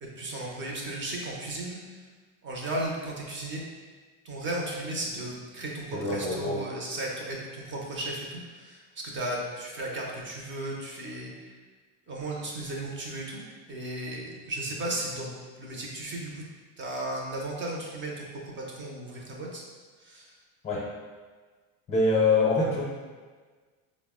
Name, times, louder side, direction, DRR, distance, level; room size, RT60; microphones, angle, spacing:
voice 1, 0.0-1.8 2.4-3.6 4.2-11.5 12.1-13.4 13.7-15.3 15.6-16.4 16.8-19.6 20.0-20.3, right 1 dB, 25° right, -2 dB, 0.4 m, -35 dB
voice 2, 5.9-6.6 20.6-20.9 21.9-22.8, left 3 dB, 25° left, -5 dB, 0.6 m, -24 dB
3.9 x 2.0 x 3.5 m, 1.4 s
cardioid pair, 125°, 49 cm